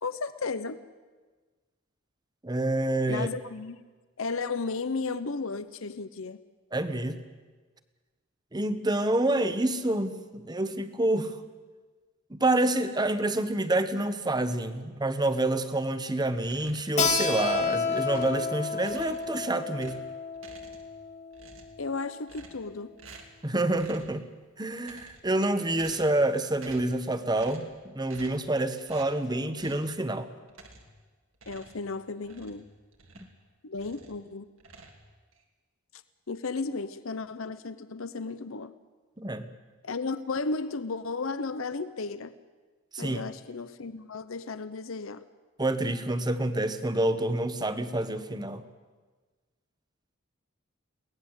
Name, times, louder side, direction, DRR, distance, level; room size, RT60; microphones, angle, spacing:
voice 1, 0.0-0.8 3.1-3.8 4.2-6.4 21.8-23.0 31.5-32.6 33.6-34.5 36.3-38.7 39.8-42.4 43.0-45.3, left 4 dB, 70° left, 13 dB, 0.8 m, -34 dB
voice 2, 2.4-3.3 6.7-7.2 8.5-11.3 12.3-20.0 23.4-24.2 24.6-30.3 39.2-39.5 42.9-43.2 45.6-48.6, right 2 dB, 20° right, 10 dB, 1.1 m, -28 dB
sound 1, 16.4-17.0 17.5-18.5 18.8-19.4 19.7-21.0 21.3-21.8 22.3-22.7 23.0-23.4 23.7-24.2 24.7-25.3 25.7-26.3 26.5-27.0 27.3-27.7 28.1-28.5 28.9-29.1 29.6-29.9 30.5-31.0 31.3-33.4 33.7-34.2 34.6-35.4, right 3 dB, 75° right, 3.0 m, -51 dB
Keyboard (musical), 17.0-22.2, left 4 dB, 30° left, 1.7 m, -31 dB
23.0 x 18.0 x 8.1 m, 1.4 s
head